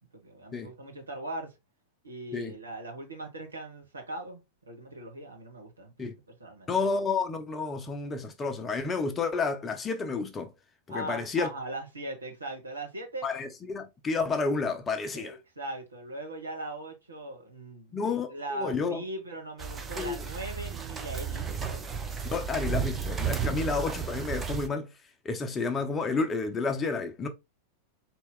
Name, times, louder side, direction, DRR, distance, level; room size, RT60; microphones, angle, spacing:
voice 1, 0.1-1.5 2.0-6.7 10.9-13.3 15.1-18.0 18.3-21.9, right 1 dB, 75° right, 1.2 m, -40 dB
voice 2, 6.7-10.5 10.9-11.5 13.2-15.4 17.9-19.0 20.0-20.2 22.3-24.9 25.2-27.3, left 4 dB, 20° left, 0.7 m, -30 dB
sound 1, 19.6-24.7, right 6 dB, 20° right, 0.6 m, -33 dB
4.2 x 3.0 x 3.6 m
figure-of-eight pair, 90°, 0 cm